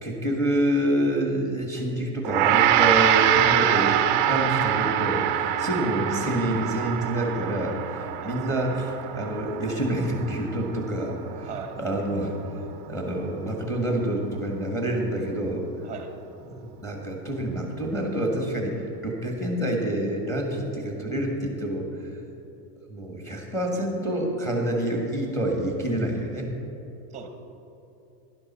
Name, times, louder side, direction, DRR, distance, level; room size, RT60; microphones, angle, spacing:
voice 1, 0.0-11.5 11.8-12.3 12.7-15.6 16.8-22.2 22.9-26.5, right 1 dB, 5° left, 1 dB, 1.5 m, -27 dB
Gong, 2.2-11.6, right 11 dB, 35° right, 0.4 m, -24 dB
voice 2, 8.2-8.9 11.4-11.8 15.8-16.2 27.1-27.3, right 7 dB, 15° right, 5 dB, 0.8 m, -39 dB
11.5 x 11.0 x 4.3 m, 3.0 s
supercardioid pair, 160°, 49 cm